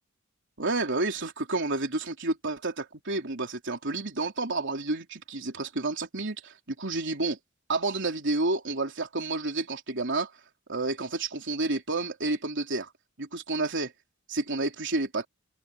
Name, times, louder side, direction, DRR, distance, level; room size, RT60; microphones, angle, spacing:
voice 1, 0.6-7.4 7.7-10.3 10.7-12.9 13.2-13.9 14.3-15.3, right 2 dB, 60° right, 3.7 m, -30 dB
open air
head